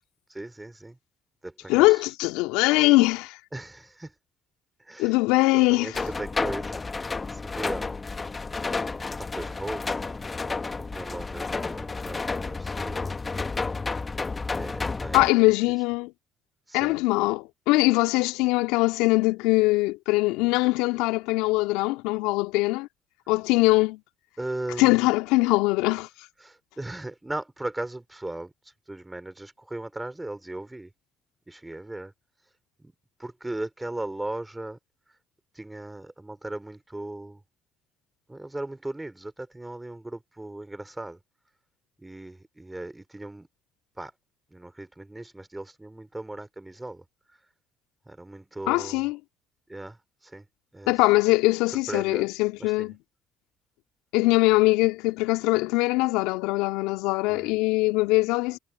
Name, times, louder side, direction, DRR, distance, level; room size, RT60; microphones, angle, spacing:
voice 1, 0.3-1.0 1.4-1.9 3.5-4.1 4.9-5.1 5.7-6.8 7.3-7.9 9.2-10.2 10.8-13.2 14.6-15.3 16.7-17.0 20.4-20.5 24.4-25.0 26.4-28.5 28.9-30.9 31.5-32.1 32.8-32.9 33.2-34.8 35.5-37.4 38.3-41.2 42.0-43.5 44.0-44.1 44.5-47.0 48.1-49.0 49.7-50.0 50.2-50.4 50.7-50.9 51.9-52.3 52.6-52.9 57.3-57.5, right 2 dB, 15° right, 3.3 m, -37 dB
voice 2, 1.7-3.4 5.0-6.0 15.1-16.1 16.7-22.9 23.3-24.0 24.8-26.1 48.7-49.2 50.9-53.0 54.1-58.6, left 22 dB, 75° left, 2.1 m, -22 dB
sound 1, 5.9-15.3, left 3 dB, 25° left, 1.5 m, -31 dB
hypercardioid pair, 55°, 0 cm